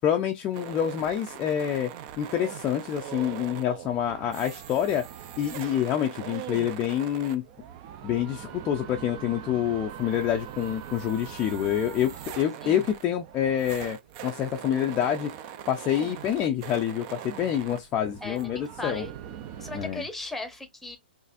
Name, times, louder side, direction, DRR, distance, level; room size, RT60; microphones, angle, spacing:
voice 1, 0.0-1.9 2.2-5.0 5.4-7.4 8.0-14.0 14.2-15.3 15.7-19.0 19.7-20.0, left 10 dB, 20° left, 0.5 m, -27 dB
sound 1, 0.5-19.9, right 10 dB, 35° right, 0.5 m, -41 dB
voice 2, 18.2-19.1 19.6-21.0, left 2 dB, 5° left, 0.8 m, -37 dB
4.0 x 2.5 x 2.5 m
hypercardioid pair, 150°, 6 cm